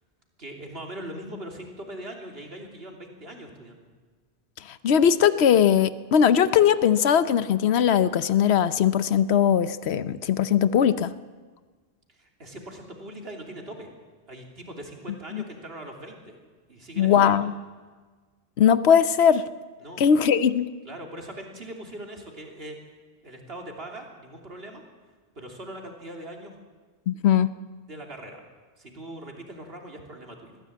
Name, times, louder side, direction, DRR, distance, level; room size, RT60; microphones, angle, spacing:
voice 1, 0.4-3.9 12.1-13.9 14.3-16.4 16.7-17.4 19.8-20.0 20.8-22.8 23.2-24.8 25.3-26.5 27.9-28.4 28.8-30.6, right 1 dB, 70° right, 1 dB, 3.3 m, -41 dB
voice 2, 4.8-11.1 15.3-15.4 17.0-17.5 18.6-19.4 20.0-20.7 27.1-27.5, left 8 dB, 85° left, 14 dB, 1.0 m, -20 dB
21.0 x 15.0 x 8.7 m, 1.4 s
omnidirectional pair, 1.1 m